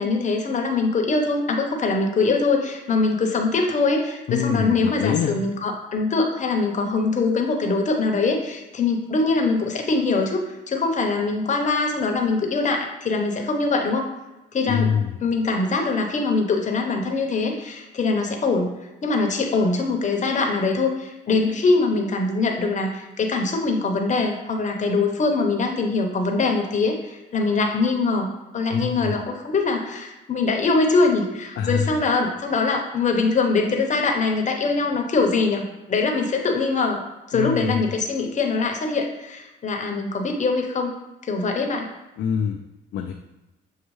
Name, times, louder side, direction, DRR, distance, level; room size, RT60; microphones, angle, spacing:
voice 1, 0.0-14.1 14.5-14.9 15.2-28.3 28.5-37.0 37.3-40.9 41.2-41.9, left 3 dB, 40° left, 2 dB, 0.8 m, -23 dB
voice 2, 4.3-5.4 14.7-15.1 28.7-29.2 31.6-32.0 37.3-37.8 42.2-42.6 42.9-43.1, left 7 dB, 65° left, 3 dB, 0.4 m, -24 dB
6.3 x 2.3 x 3.1 m, 1.0 s
cardioid pair, 90°, 20 cm